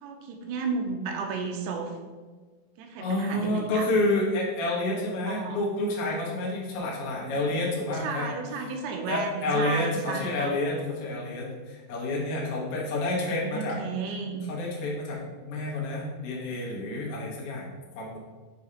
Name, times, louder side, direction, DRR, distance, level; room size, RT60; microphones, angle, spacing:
voice 1, 0.0-1.9 2.8-3.9 5.3-5.6 7.3-7.6 7.9-10.5 13.0-14.4, right 5 dB, 80° right, 3 dB, 2.6 m, -33 dB
voice 2, 3.0-8.3 9.1-13.8 14.5-18.2, left 2 dB, 80° left, -4 dB, 1.3 m, -29 dB
7.3 x 2.8 x 4.9 m, 1.3 s
omnidirectional pair, 4.8 m